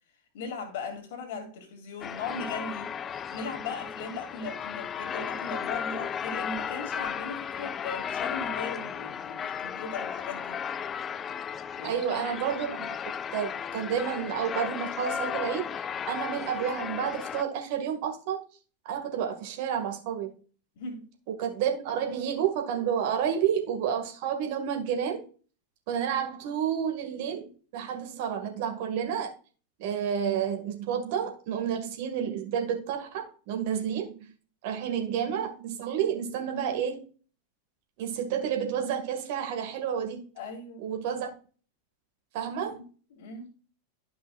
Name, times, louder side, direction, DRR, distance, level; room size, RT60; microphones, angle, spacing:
voice 1, 0.3-2.9 3.3-10.6 11.7-12.2 20.8-21.1 40.4-40.8 43.1-43.5, left 4 dB, 50° left, 2.4 m, -38 dB
sound 1, 2.0-17.4, left 8 dB, 25° left, 0.3 m, -35 dB
voice 2, 11.8-12.9 13.3-15.7 16.1-18.4 18.9-20.3 21.4-25.2 25.9-29.3 29.8-34.3 34.6-37.1 38.0-40.2 40.8-41.3 42.3-42.8, right 8 dB, 50° right, 1.8 m, -30 dB
12.5 x 5.4 x 2.4 m
figure-of-eight pair, 90°, 0 cm